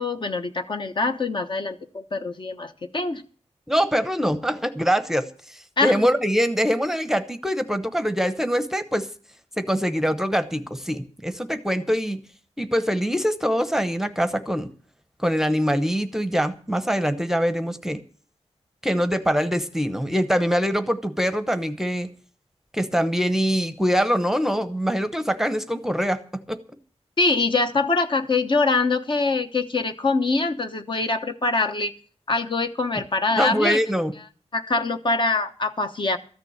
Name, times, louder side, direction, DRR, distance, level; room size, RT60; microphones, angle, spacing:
voice 1, 0.0-3.2 5.8-6.0 27.2-31.9 32.3-33.8 34.5-36.2, left 3 dB, 45° left, 7 dB, 1.0 m, -24 dB
voice 2, 3.7-9.1 9.6-12.2 12.6-14.7 15.2-18.0 18.8-22.1 22.7-26.6 33.4-34.1, equal, 5° right, 10 dB, 0.9 m, -23 dB
14.0 x 6.8 x 8.6 m, 0.43 s
wide cardioid pair, 100°, 11 cm